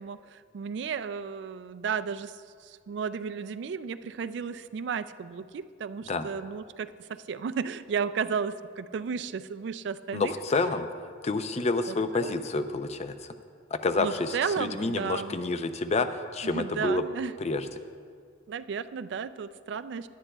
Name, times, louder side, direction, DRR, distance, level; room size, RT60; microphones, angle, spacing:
voice 1, 0.0-10.3 11.9-12.4 14.0-15.4 16.4-17.3 18.5-20.1, right 6 dB, 65° right, 13 dB, 0.3 m, -34 dB
voice 2, 10.1-10.9 11.2-13.3 13.7-17.0 17.4-17.7, left 3 dB, 35° left, 9 dB, 0.5 m, -29 dB
17.5 x 11.0 x 2.3 m, 2.1 s
head